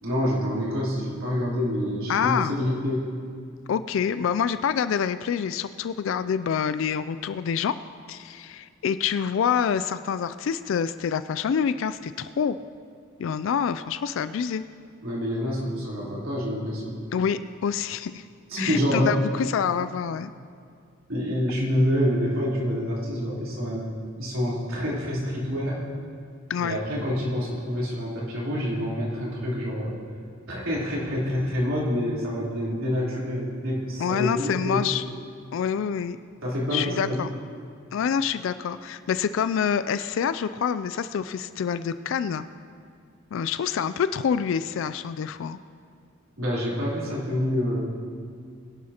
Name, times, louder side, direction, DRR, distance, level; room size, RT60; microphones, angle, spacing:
voice 1, 0.0-3.1 15.0-17.0 18.5-19.2 21.1-23.9 24.2-25.9 26.6-30.0 30.5-34.8 36.4-37.2 46.4-47.8, equal, 85° right, -6 dB, 3.6 m, -27 dB
voice 2, 2.1-2.5 3.7-7.8 8.1-12.6 13.2-14.6 17.1-18.2 18.6-20.3 26.5-26.8 34.0-35.0 35.5-36.2 36.7-37.3 37.9-42.4 43.3-45.6, left 7 dB, 70° left, 13 dB, 0.3 m, -26 dB
21.5 x 11.0 x 2.9 m, 2.2 s
head